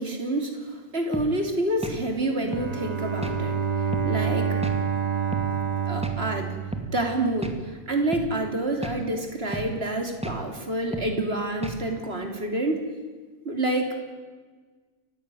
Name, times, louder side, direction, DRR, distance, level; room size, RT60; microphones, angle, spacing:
voice 1, 0.0-3.6 4.0-4.6 5.9-6.6 6.9-7.6 7.9-12.8 13.4-14.0, right 1 dB, 45° right, 4 dB, 3.4 m, -28 dB
sound 1, 1.1-1.3 1.8-2.0 2.5-2.7 3.2-3.4 3.9-4.1 4.6-4.8 5.3-5.5 6.0-6.2 6.7-6.9 7.4-7.6 8.1-8.3 8.8-9.0 9.5-9.7 10.2-10.4 10.9-11.1 11.6-11.8, right 1 dB, 5° right, 2.1 m, -32 dB
Bowed string instrument, 2.4-7.4, right 6 dB, 30° right, 1.9 m, -28 dB
29.0 x 15.5 x 9.2 m, 1.4 s
omnidirectional pair, 1.4 m